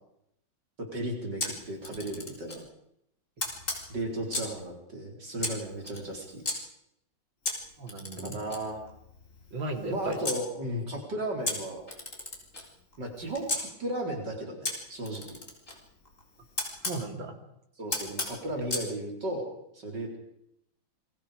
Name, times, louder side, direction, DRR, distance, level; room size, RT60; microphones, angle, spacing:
voice 1, 0.9-2.6 3.9-6.4 8.2-8.8 9.9-11.8 13.0-15.2 17.8-20.2, right 1 dB, 60° right, 2 dB, 4.6 m, -35 dB
Camera, 1.4-2.6 3.4-4.6 5.4-6.6 7.4-10.4 11.4-13.6 14.6-17.0 17.9-18.9, left 2 dB, 40° left, 4.4 m, -36 dB
voice 2, 7.8-8.4 9.5-10.2 16.8-17.4, right 2 dB, 85° right, 4 dB, 3.8 m, -35 dB
28.0 x 22.0 x 5.1 m, 0.77 s
omnidirectional pair, 2.1 m